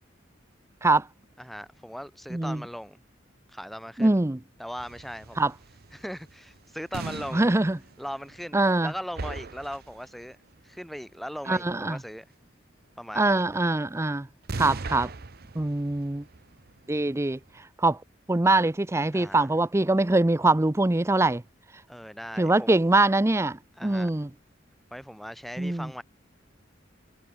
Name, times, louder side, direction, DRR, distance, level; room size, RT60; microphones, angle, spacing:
voice 1, 1.4-3.0 3.5-4.2 4.6-5.5 5.9-7.5 8.0-10.4 10.6-12.2 13.0-13.5 19.1-19.5 21.9-22.8 23.8-24.1 24.9-26.0, equal, ahead, 1.1 m, -39 dB
voice 2, 2.3-2.6 4.0-4.4 5.4-5.5 7.3-7.8 8.5-8.9 11.5-12.0 13.1-14.3 14.6-15.1 15.5-16.2 16.9-17.4 17.8-18.0 18.3-21.4 22.4-24.3 25.6-25.9, right 2 dB, 15° right, 0.5 m, -23 dB
sound 1, 4.8-8.9 9.1-10.3 14.4-17.5, right 3 dB, 55° right, 0.9 m, -39 dB
head